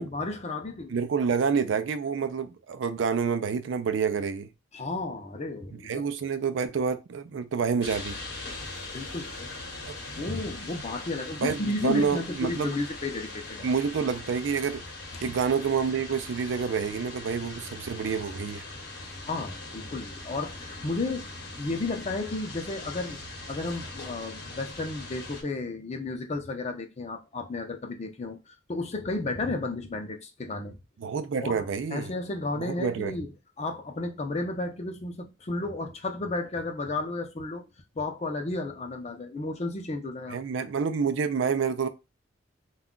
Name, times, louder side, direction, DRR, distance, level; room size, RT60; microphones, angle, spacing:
voice 1, 0.0-1.0 4.7-6.1 8.9-9.5 10.2-13.7 15.1-15.3 19.3-21.3 21.6-30.8 31.4-31.7 31.9-33.3 33.6-37.7 38.0-40.4, left 2 dB, 35° left, 0.5 m, -33 dB
voice 2, 0.9-4.5 5.8-8.2 11.4-12.7 13.6-14.8 15.2-18.6 31.0-32.1 32.5-33.1 40.3-41.9, right 6 dB, 70° right, 0.4 m, -28 dB
sound 1, 7.8-25.4, left 2 dB, 55° left, 0.9 m, -41 dB
2.3 x 2.2 x 3.7 m
head